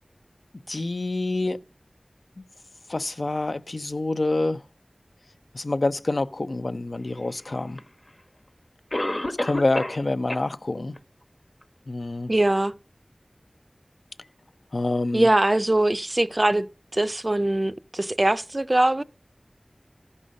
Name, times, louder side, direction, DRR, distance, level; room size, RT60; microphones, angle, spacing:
voice 1, 0.7-1.6 2.9-4.6 5.5-7.8 9.4-10.9 11.9-12.3 14.7-15.3, left 2 dB, 80° left, 0.5 m, -27 dB
Cough, 7.8-7.9 8.9-10.0 10.3-10.4 11.0-11.1 11.6-11.7, left 1 dB, 40° left, 1.0 m, -28 dB
voice 2, 12.3-12.7 15.1-16.7 16.9-19.0, right 1 dB, 45° right, 0.4 m, -22 dB
14.0 x 5.5 x 6.3 m
wide cardioid pair, 45°, 0 cm